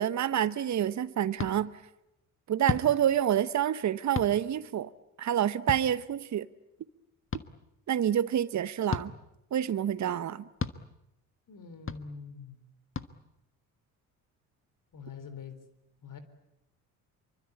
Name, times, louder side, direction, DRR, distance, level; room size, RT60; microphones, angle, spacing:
voice 1, 0.0-1.7 2.5-4.9 5.2-6.5 7.9-9.1 9.5-10.4, right 10 dB, 40° right, 1.1 m, -27 dB
sound 1, 1.4-1.5 2.6-2.9 4.1-4.3 5.7-5.8 7.3-7.4 8.9-9.1 10.6-10.8 11.9-12.0 12.9-13.1, left 6 dB, 30° left, 1.5 m, -32 dB
voice 2, 11.5-12.6 14.9-15.6 16.0-16.2, left 5 dB, 45° left, 3.9 m, -44 dB
26.0 x 24.0 x 8.5 m
hypercardioid pair, 50°, 43 cm